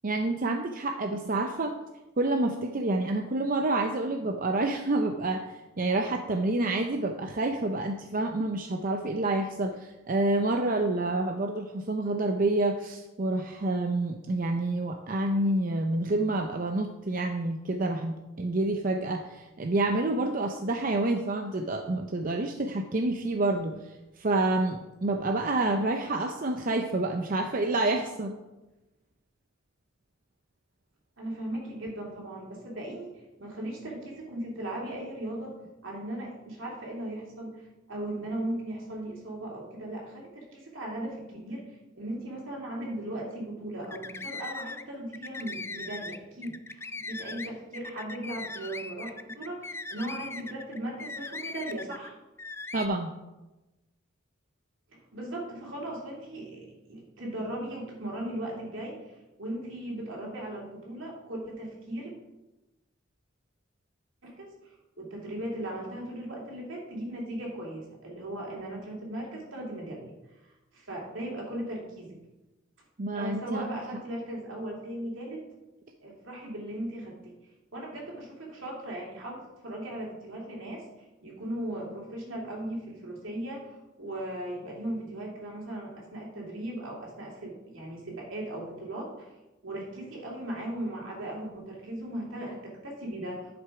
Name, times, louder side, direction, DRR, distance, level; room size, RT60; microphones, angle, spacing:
voice 1, 0.0-1.7 2.2-23.8 24.2-28.4 52.7-53.1 73.0-73.8, right 2 dB, 45° right, 5 dB, 0.6 m, -28 dB
voice 2, 31.2-33.1 33.4-37.5 37.9-41.6 42.0-52.1 55.1-59.0 59.4-62.1 64.2-64.5 65.0-70.1 70.7-72.2 73.1-75.4 76.0-77.3 77.7-80.8 81.2-83.6 84.0-89.1 89.6-93.6, right 1 dB, 75° right, -2 dB, 2.9 m, -37 dB
sound 1, 43.8-44.8 45.1-52.1 52.4-52.9, left 3 dB, 10° left, 0.3 m, -39 dB
10.5 x 6.1 x 4.8 m, 1.0 s
head